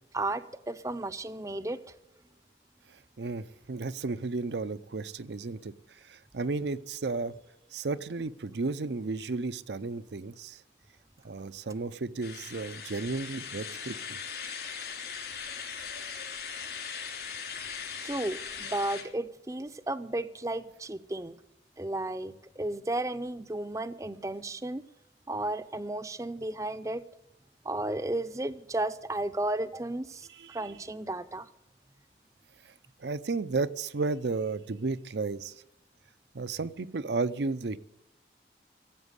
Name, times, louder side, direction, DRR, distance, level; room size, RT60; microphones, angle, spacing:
voice 1, 0.1-1.8 18.0-21.4 21.8-24.8 25.3-27.0 27.6-31.5, right 1 dB, 20° right, 13 dB, 0.6 m, -33 dB
voice 2, 3.2-5.7 6.1-7.3 7.7-10.6 11.2-14.2 30.3-30.7 33.0-35.5 36.3-37.8, right 3 dB, 80° right, 14 dB, 0.6 m, -33 dB
sound 1, 12.2-19.0, left 6 dB, 65° left, 3.1 m, -39 dB
16.0 x 8.1 x 8.1 m, 0.85 s
head